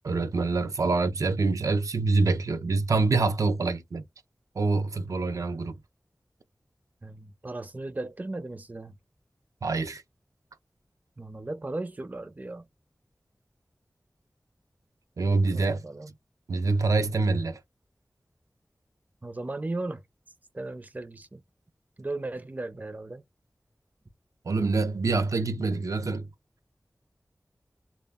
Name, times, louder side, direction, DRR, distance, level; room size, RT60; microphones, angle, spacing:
voice 1, 0.0-4.0 4.6-5.8 9.6-10.0 15.2-15.9 16.5-17.6 24.5-26.3, right 3 dB, 80° right, 0.5 m, -26 dB
voice 2, 7.0-8.9 11.2-12.7 15.5-16.1 19.2-20.0 20.5-21.4 22.0-23.2, right 2 dB, 30° right, 0.5 m, -36 dB
2.1 x 2.1 x 3.4 m
wide cardioid pair, 65°, 6 cm